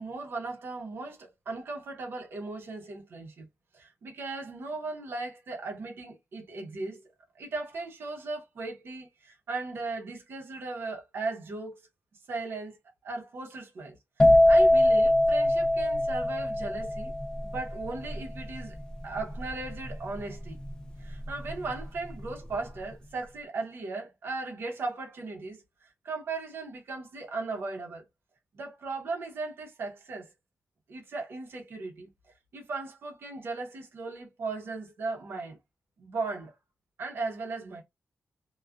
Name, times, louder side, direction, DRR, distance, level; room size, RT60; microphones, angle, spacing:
voice 1, 0.0-3.5 3.7-7.0 7.4-11.8 12.3-12.8 13.0-17.1 17.4-18.8 19.0-20.6 21.0-28.0 28.5-30.3 30.9-32.1 32.5-35.6 36.0-36.5 37.0-37.8, right 3 dB, 65° right, 0.8 m, -37 dB
sound 1, 14.2-21.8 22.0-22.5, left 1 dB, 15° left, 0.4 m, -23 dB
2.3 x 2.3 x 2.4 m
wide cardioid pair, 175°, 4 cm